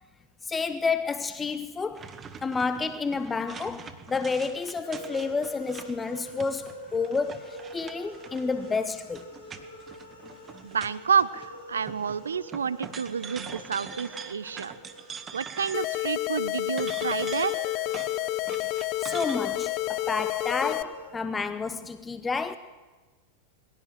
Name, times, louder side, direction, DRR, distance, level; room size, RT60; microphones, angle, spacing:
voice 1, 0.4-2.1 2.4-9.3 19.0-22.6, left 4 dB, 15° left, 0.9 m, -30 dB
sound 1, 1.9-11.5 11.8-16.1 16.4-19.4, right 6 dB, 20° right, 1.8 m, -44 dB
sound 2, 4.8-16.6 17.4-21.1, equal, 80° left, 7.3 m, -45 dB
voice 2, 10.6-14.7 15.3-17.6, right 6 dB, 70° right, 0.8 m, -29 dB
sound 3, 15.7-20.8, left 17 dB, 40° left, 0.7 m, -30 dB
21.0 x 16.5 x 7.8 m
figure-of-eight pair, 90°, 0 cm